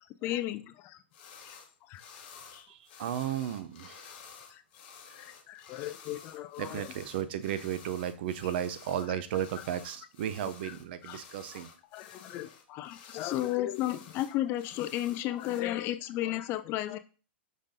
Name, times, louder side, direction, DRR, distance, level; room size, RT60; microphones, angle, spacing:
voice 1, 0.2-1.0 1.4-1.6 1.9-2.0 2.5-2.7 4.5-4.6 5.1-6.9 8.4-8.5 9.1-9.2 9.6-9.7 10.6-10.7 11.0-11.2 11.9-17.0, left 14 dB, 35° left, 11 dB, 0.4 m, -34 dB
sound 1, 1.1-1.7 1.9-15.6, left 6 dB, 55° left, 0.8 m, -52 dB
voice 2, 3.0-4.0 6.6-11.7, right 10 dB, 60° right, 12 dB, 0.5 m, -34 dB
5.1 x 2.6 x 3.7 m, 0.36 s
hypercardioid pair, 120°, 6 cm